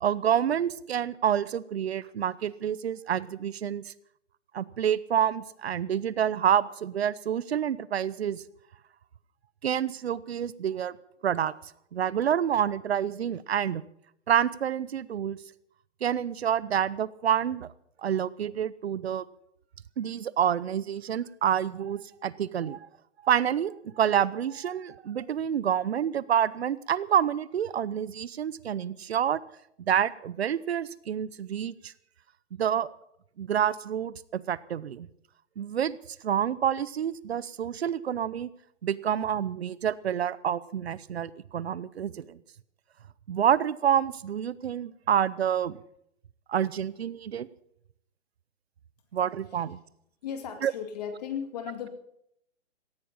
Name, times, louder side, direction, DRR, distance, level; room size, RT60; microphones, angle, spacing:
voice 1, 0.0-3.9 4.5-8.4 9.6-11.0 11.2-11.5 11.9-13.8 14.3-15.4 16.0-17.7 18.0-19.2 20.0-22.8 23.2-29.4 29.8-31.9 32.6-32.9 33.4-35.1 35.6-36.0 36.2-38.5 38.8-42.4 43.3-45.8 46.5-47.5 49.1-49.8 50.6-50.7, right 9 dB, 60° right, 19 dB, 0.9 m, -28 dB
voice 2, 50.2-51.9, left 8 dB, 35° left, 7 dB, 2.2 m, -35 dB
18.0 x 14.0 x 5.5 m, 0.74 s
hypercardioid pair, 165°, 36 cm